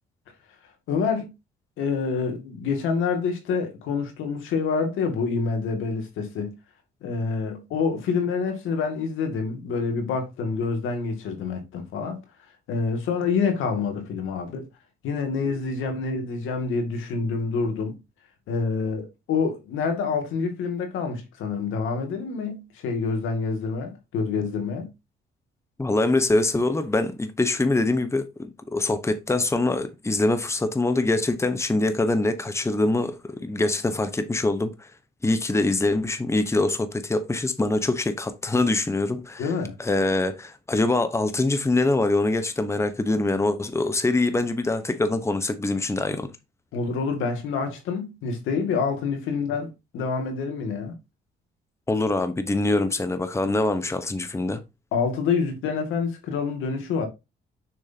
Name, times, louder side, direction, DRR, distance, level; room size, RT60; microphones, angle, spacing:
voice 1, 0.9-1.3 1.8-6.5 7.0-12.2 12.7-14.7 15.0-18.0 18.5-24.9 39.4-39.7 46.7-51.0 54.9-57.1, left 5 dB, 85° left, 2.3 m, -27 dB
voice 2, 25.8-34.9 35.2-39.5 39.8-46.3 51.9-54.6, left 2 dB, 15° left, 1.0 m, -24 dB
6.6 x 6.3 x 2.8 m
cardioid pair, 90°, 20 cm